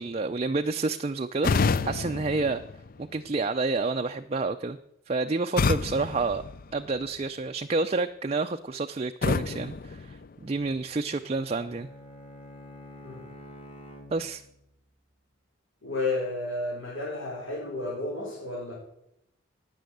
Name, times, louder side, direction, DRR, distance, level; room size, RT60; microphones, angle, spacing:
voice 1, 0.0-2.6 3.0-4.8 5.1-6.4 6.7-11.9 14.1-14.4, right 3 dB, 30° right, 7 dB, 0.4 m, -29 dB
sound 1, 1.4-3.4 5.6-7.3 9.2-10.8, left 4 dB, 45° left, 0.4 m, -29 dB
Bowed string instrument, 11.0-14.7, left 1 dB, 25° left, 1.9 m, -47 dB
voice 2, 15.8-18.7, left 2 dB, 80° left, -5 dB, 4.8 m, -32 dB
18.5 x 6.3 x 7.9 m, 0.81 s
head